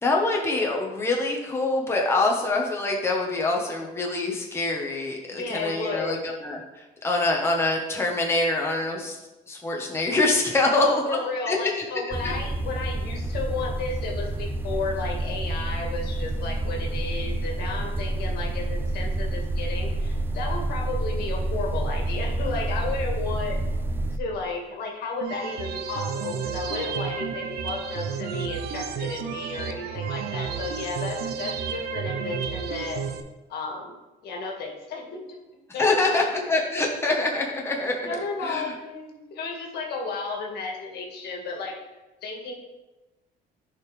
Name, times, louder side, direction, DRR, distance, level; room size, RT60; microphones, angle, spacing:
voice 1, 0.0-9.2 9.5-11.0 11.5-11.6 12.2-12.3 35.8-38.7, left 2 dB, 15° left, -1 dB, 1.2 m, -25 dB
voice 2, 5.3-6.2 10.6-23.6 24.2-33.0 33.5-35.2 35.7-36.2 38.0-41.8 42.2-42.5, left 3 dB, 70° left, 0 dB, 1.9 m, -33 dB
sound 1, 12.1-24.2, right 2 dB, 10° right, 0.4 m, -28 dB
sound 2, 25.2-33.2, right 6 dB, 70° right, 0.8 m, -31 dB
10.5 x 5.1 x 3.4 m, 1.1 s
cardioid pair, 110°, 17 cm